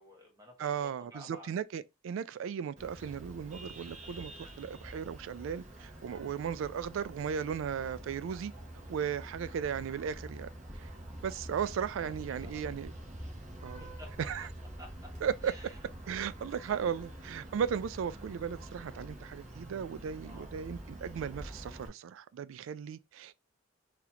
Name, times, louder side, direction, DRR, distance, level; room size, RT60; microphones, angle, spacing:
voice 1, 0.0-1.6 8.8-9.0 11.3-12.7 13.2-14.2 14.8-15.1 15.4-15.8 16.7-17.2 20.2-20.5, left 1 dB, 20° right, 1.3 m, -54 dB
voice 2, 0.6-8.5 8.9-10.5 10.8-10.9 11.2-12.9 13.6-13.8 14.3-14.5 15.2-15.5 16.1-23.4, right 7 dB, 75° right, 0.3 m, -36 dB
Vehicle horn car horn honking, 2.8-21.9, right 1 dB, 40° right, 1.0 m, -46 dB
4.0 x 2.9 x 2.8 m
head